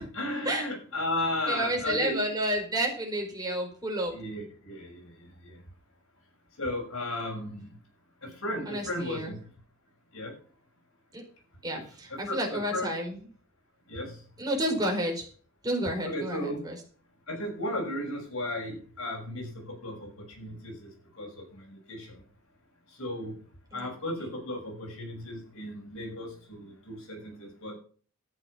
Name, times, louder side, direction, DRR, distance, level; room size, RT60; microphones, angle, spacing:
voice 1, 0.0-2.3 4.1-5.6 6.6-7.7 8.2-9.4 10.1-10.3 12.1-12.9 13.9-14.2 16.0-16.6 17.3-22.2 23.0-23.4 23.7-27.8, left 1 dB, 65° left, 0 dB, 6.4 m, -35 dB
voice 2, 1.5-4.1 8.7-9.3 11.1-11.2 11.6-13.2 14.4-15.3 15.6-16.8 23.7-23.9 24.2-24.3, right 1 dB, 20° right, 1 dB, 4.7 m, -30 dB
13.0 x 8.7 x 5.8 m, 0.42 s
head